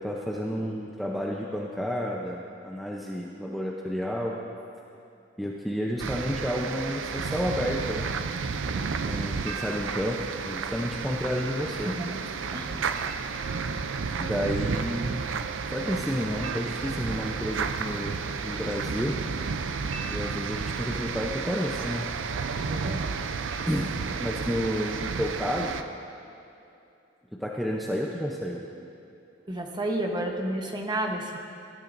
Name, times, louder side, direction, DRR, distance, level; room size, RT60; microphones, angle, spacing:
voice 1, 0.0-4.4 5.4-8.1 9.0-11.9 12.7-12.9 14.2-15.2 15.7-19.2 20.1-22.1 23.7-25.8 27.4-28.6, equal, ahead, -3 dB, 0.6 m, -31 dB
sound 1, 6.0-25.8, right 5 dB, 75° right, 0.5 m, -32 dB
voice 2, 11.6-12.1 12.5-12.8 22.6-23.2 29.5-31.4, right 1 dB, 20° right, 1 dB, 1.0 m, -31 dB
18.5 x 12.0 x 2.6 m, 2.6 s
head